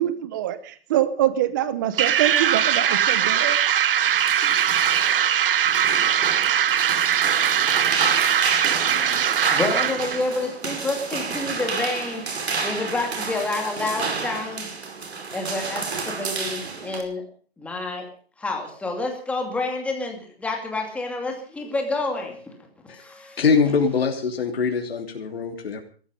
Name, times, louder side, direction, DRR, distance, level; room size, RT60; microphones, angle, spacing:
voice 1, 0.0-3.6, right 12 dB, 20° right, 14 dB, 0.7 m, -24 dB
sound 1, 2.0-10.3, right 9 dB, 60° right, 0.7 m, -21 dB
sound 2, 3.9-17.0, right 4 dB, 80° right, 5.1 m, -30 dB
voice 2, 9.5-14.7 15.3-17.2 17.6-18.1 18.4-23.4, left 2 dB, 5° left, 2 dB, 2.5 m, -29 dB
voice 3, 23.4-25.8, left 5 dB, 65° left, 2 dB, 3.2 m, -23 dB
18.0 x 14.0 x 5.2 m, 0.43 s
hypercardioid pair, 165°, 32 cm